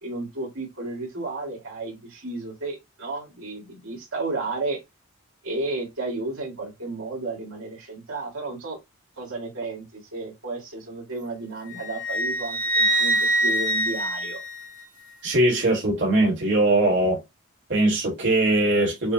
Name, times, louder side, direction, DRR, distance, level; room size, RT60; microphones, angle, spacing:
voice 1, 0.0-4.8 5.4-8.8 9.2-14.4, right 3 dB, 75° right, 2.5 m, -33 dB
Wind instrument woodwind instrument, 11.7-15.1, right 1 dB, 20° right, 1.2 m, -25 dB
voice 2, 15.2-17.2 17.7-19.1, right 1 dB, 50° right, 1.8 m, -21 dB
6.4 x 2.3 x 2.9 m
head